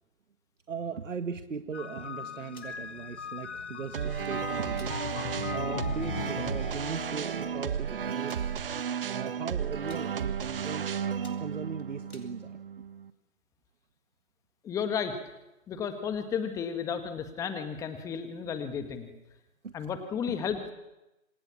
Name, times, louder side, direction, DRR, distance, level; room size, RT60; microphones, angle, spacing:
voice 1, 0.7-5.0 5.5-8.6 9.1-11.1 11.4-12.6 19.6-19.8 20.3-20.4, right 5 dB, 65° right, 8 dB, 1.9 m, -38 dB
sound 1, 1.7-9.0, left 6 dB, 55° left, 1.7 m, -39 dB
sound 2, 2.4-2.8 4.0-4.3 4.7-5.0 5.5-5.6 5.9-6.1 6.9-7.0 7.2-7.3 8.2-8.5 9.1-9.4 9.7-10.1 10.6-10.8 11.1-12.3, left 2 dB, 90° left, 5.2 m, -54 dB
sound 3, 3.9-13.1, right 8 dB, 40° right, 1.5 m, -33 dB
voice 2, 14.6-15.2 15.7-19.1 19.7-20.7, left 7 dB, 10° left, 9 dB, 1.6 m, -33 dB
28.0 x 27.5 x 7.3 m, 0.97 s
figure-of-eight pair, 145°, 41 cm